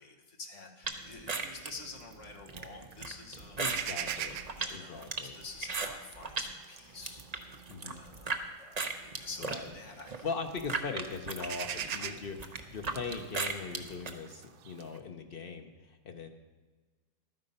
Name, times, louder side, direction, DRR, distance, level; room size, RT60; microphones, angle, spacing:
voice 1, 0.0-3.6 4.5-7.2 7.9-9.5 9.7-10.3 11.4-12.2, left 3 dB, 45° left, 1 dB, 1.5 m, -48 dB
sound 1, 0.8-6.5 6.9-8.4 8.8-14.1, right 4 dB, 45° right, 0.5 m, -37 dB
voice 2, 3.6-4.4 4.7-5.4 7.7-8.0 9.4-9.7 10.2-16.3, left 4 dB, 70° left, 5 dB, 0.5 m, -40 dB
sound 2, 3.7-9.9 10.2-10.8 11.0-15.0, right 9 dB, 70° right, 1.1 m, -42 dB
12.5 x 9.4 x 5.4 m, 1.3 s
omnidirectional pair, 2.1 m